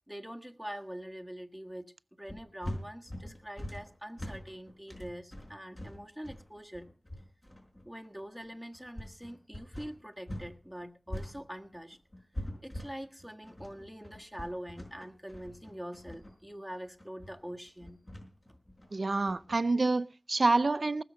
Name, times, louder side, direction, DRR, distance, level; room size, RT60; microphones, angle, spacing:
voice 1, 0.1-6.9 7.8-12.0 12.6-18.0, equal, ahead, 1.6 m, -44 dB
sound 1, 2.3-10.5 10.8-19.6, left 1 dB, 35° left, 5.4 m, -43 dB
voice 2, 18.9-21.0, right 3 dB, 70° right, 0.6 m, -27 dB
19.5 x 6.8 x 6.4 m
wide cardioid pair, 50°, 0 cm